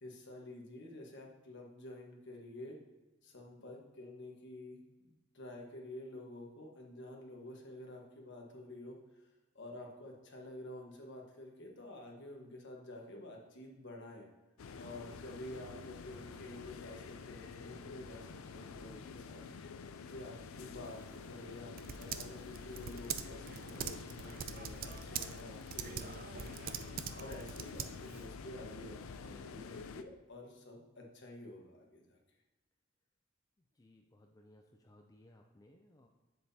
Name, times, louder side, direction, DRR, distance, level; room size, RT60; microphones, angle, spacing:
voice 1, 0.0-2.8 3.2-9.2 9.5-14.3 14.7-19.4 20.1-26.5 27.1-32.2, left 1 dB, 60° left, 0 dB, 1.4 m, -50 dB
sound 1, 14.6-30.0, left 5 dB, 85° left, 0.5 m, -48 dB
Typing, 20.9-28.3, right 8 dB, 45° right, 0.4 m, -44 dB
voice 2, 33.7-36.1, left 1 dB, 15° left, 2 dB, 0.4 m, -62 dB
7.7 x 7.3 x 2.8 m, 1.1 s
head